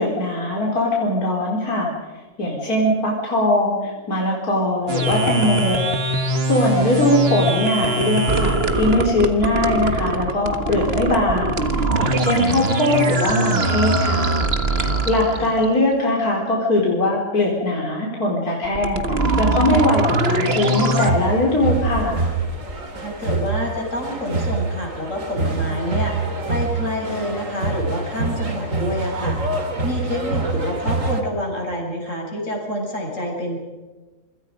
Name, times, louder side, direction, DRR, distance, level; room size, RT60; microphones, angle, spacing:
voice 1, 0.0-1.9 2.4-5.9 6.4-11.6 12.0-14.3 14.7-19.0 19.4-22.2, left 1 dB, 80° left, -3 dB, 4.6 m, -21 dB
sound 1, 4.9-15.7 18.6-21.1, right 2 dB, 45° right, 1.8 m, -22 dB
sound 2, 20.5-31.2, right 3 dB, 60° right, 3.1 m, -26 dB
voice 2, 23.0-33.6, left 1 dB, 55° left, -1 dB, 7.6 m, -28 dB
27.5 x 25.5 x 5.3 m, 1.3 s
omnidirectional pair, 1.6 m